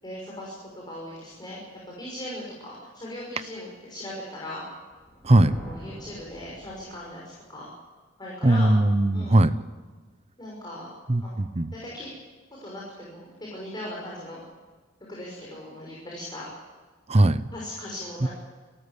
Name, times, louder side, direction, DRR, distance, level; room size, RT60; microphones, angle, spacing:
voice 1, 0.0-1.6 1.9-4.6 5.5-7.7 8.2-8.7 9.1-9.4 10.4-10.9 11.2-11.3 11.7-12.1 12.6-14.4 15.1-16.5 17.5-18.3, left 1 dB, 25° left, -4 dB, 6.1 m, -38 dB
Thunder, 4.9-7.3, equal, ahead, 4.5 m, -44 dB
voice 2, 5.2-5.5 8.4-9.5 11.1-11.7 17.1-17.5 18.2-18.3, right 1 dB, 35° right, 13 dB, 0.9 m, -19 dB
27.0 x 14.0 x 8.4 m, 1.4 s
head